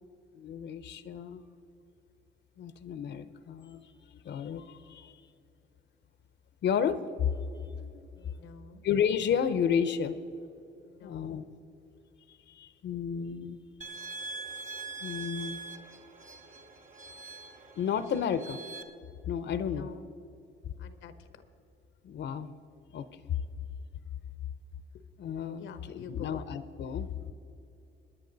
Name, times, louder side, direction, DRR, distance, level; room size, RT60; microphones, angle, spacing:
voice 1, 0.3-1.5 2.6-5.1 6.6-7.9 8.8-10.4 11.0-11.5 12.6-13.6 15.0-15.6 17.8-18.6 19.3-19.9 22.0-22.5 22.9-23.0 25.2-27.1, left 7 dB, 60° left, 12 dB, 0.7 m, -32 dB
voice 2, 8.1-8.8 10.8-11.4 18.3-18.4 19.7-20.1 20.8-21.4 24.9-25.0 25.6-26.5, left 7 dB, 85° left, 10 dB, 1.0 m, -48 dB
sound 1, 13.8-18.8, right 4 dB, 40° right, 1.4 m, -43 dB
23.0 x 9.9 x 4.0 m, 2.8 s
cardioid pair, 90°, 20 cm